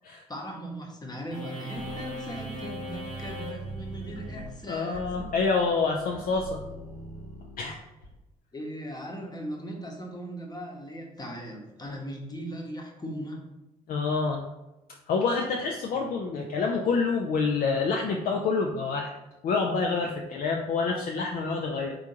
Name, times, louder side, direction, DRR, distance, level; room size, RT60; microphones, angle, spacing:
voice 1, 0.3-5.3 8.5-13.4 15.9-16.1, right 1 dB, 20° left, 1 dB, 1.0 m, -38 dB
sound 1, 1.3-8.1, equal, 85° left, 0.8 m, -40 dB
voice 2, 4.7-6.6 7.6-7.8 13.9-14.4 15.1-19.1 19.4-21.9, left 4 dB, 45° left, 1 dB, 0.5 m, -27 dB
3.8 x 3.4 x 2.8 m, 0.98 s
figure-of-eight pair, 45°, 20 cm